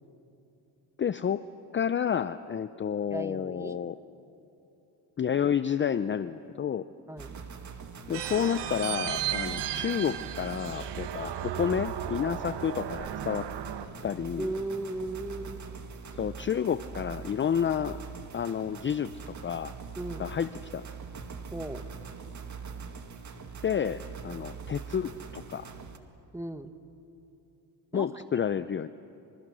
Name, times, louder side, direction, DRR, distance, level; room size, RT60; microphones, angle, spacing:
voice 1, 1.0-1.4 1.7-4.0 5.2-6.8 8.1-13.4 14.0-14.5 16.2-18.0 18.3-19.7 20.2-20.8 23.6-25.7 27.9-28.9, left 8 dB, 25° left, 13 dB, 0.5 m, -30 dB
voice 2, 3.1-3.8 7.1-7.3 14.3-15.6 20.0-20.2 21.5-21.8 26.3-26.7 27.9-28.2, right 2 dB, 5° right, 9 dB, 1.4 m, -36 dB
sound 1, 7.2-26.0, right 5 dB, 40° right, 2.2 m, -43 dB
sound 2, 8.1-13.9, right 11 dB, 65° right, 1.4 m, -35 dB
30.0 x 27.0 x 6.3 m, 2.9 s
cardioid pair, 85°, 44 cm